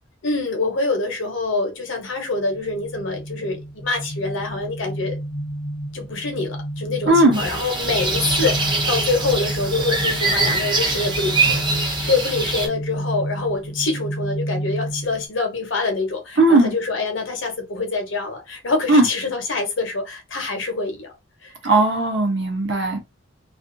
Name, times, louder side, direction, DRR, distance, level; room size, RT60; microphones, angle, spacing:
voice 1, 0.2-5.2 5.9-21.1 21.4-21.8, left 3 dB, 65° left, 0.8 m, -25 dB
sound 1, 2.5-15.3, right 1 dB, 30° left, 0.4 m, -31 dB
voice 2, 7.1-7.4 16.4-16.7 18.9-19.1 21.6-23.0, right 2 dB, 55° right, 0.7 m, -16 dB
sound 2, 7.3-12.7, right 3 dB, 25° right, 0.6 m, -23 dB
2.4 x 2.3 x 2.5 m
head